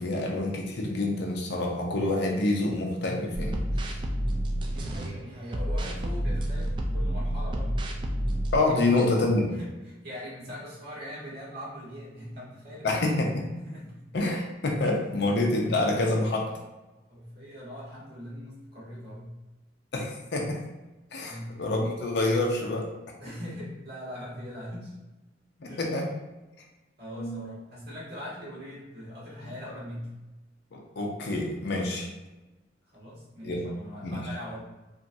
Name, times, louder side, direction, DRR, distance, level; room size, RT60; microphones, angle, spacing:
voice 1, 0.0-4.0 8.5-9.5 12.8-13.4 14.1-16.5 19.9-20.6 21.1-22.9 25.6-26.1 27.2-27.4 29.7-29.8 30.7-32.1 33.4-33.6 34.0-34.2, left 2 dB, 65° left, 0 dB, 0.5 m, -27 dB
sound 1, 3.3-5.1 5.5-8.6, equal, 25° right, 0.3 m, -29 dB
voice 2, 4.7-7.8 8.7-8.9 9.6-13.2 13.7-14.1 17.1-19.3 21.2-21.7 23.2-24.9 25.6-26.0 27.0-30.2 32.9-34.6, equal, 55° right, -6 dB, 1.3 m, -41 dB
3.0 x 2.4 x 2.6 m, 1.1 s
head